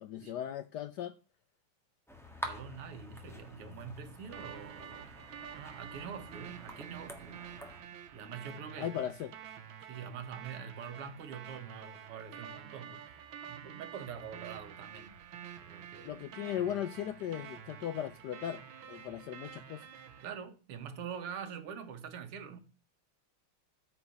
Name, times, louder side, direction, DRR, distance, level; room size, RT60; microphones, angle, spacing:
voice 1, 0.0-1.1 8.8-9.3 16.0-18.6 18.9-19.8, left 10 dB, 85° left, 0.9 m, -37 dB
sound 1, 2.1-7.8, left 1 dB, ahead, 1.1 m, -47 dB
voice 2, 2.4-5.1 5.5-7.4 8.1-9.0 9.9-15.2 15.6-16.2 20.2-22.6, right 7 dB, 90° right, 2.1 m, -45 dB
sound 2, 4.3-20.3, right 9 dB, 70° right, 1.7 m, -49 dB
9.0 x 4.7 x 6.7 m
omnidirectional pair, 2.4 m